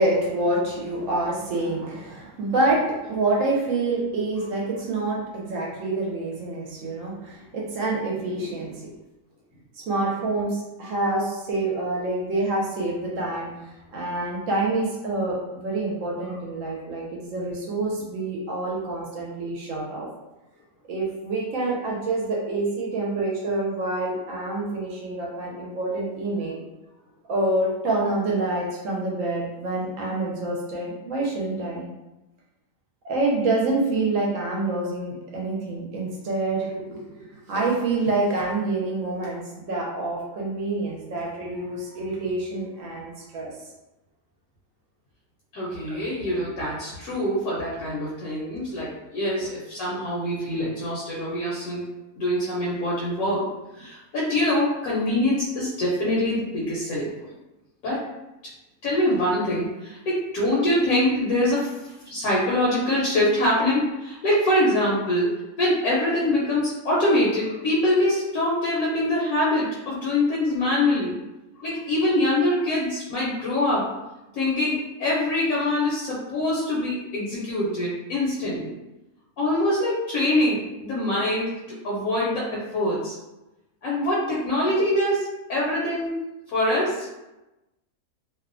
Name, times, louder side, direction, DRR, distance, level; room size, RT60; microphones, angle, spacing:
voice 1, 0.0-8.9 9.8-13.5 13.9-20.1 20.9-26.6 27.3-31.8 33.0-37.2 37.5-43.5 45.9-46.0, right 2 dB, 70° right, -2 dB, 0.9 m, -27 dB
voice 2, 45.5-51.9 52.2-53.5 53.7-57.3 57.8-58.1 58.8-61.8 62.1-71.2 71.6-73.9 74.3-78.7 79.4-83.2 83.8-86.2 86.5-87.1, left 1 dB, 75° left, -6 dB, 1.1 m, -24 dB
2.6 x 2.1 x 2.5 m, 1.0 s
omnidirectional pair, 1.5 m